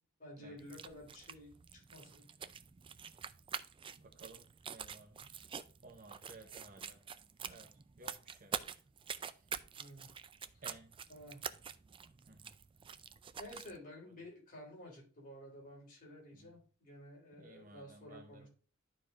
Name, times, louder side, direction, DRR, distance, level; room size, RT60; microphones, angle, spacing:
voice 1, 0.2-2.2 9.8-10.1 11.1-11.4 13.4-18.5, left 1 dB, 40° left, -2 dB, 3.7 m, -52 dB
sound 1, 0.6-13.8, right 7 dB, 25° right, 0.4 m, -47 dB
voice 2, 4.0-5.4 5.8-7.0 7.4-7.7 8.0-8.7 9.2-9.4 10.6-10.9 12.3-12.5 16.4-16.5 17.4-18.5, right 2 dB, 40° right, 4 dB, 0.9 m, -57 dB
12.0 x 4.6 x 2.5 m, 0.40 s
head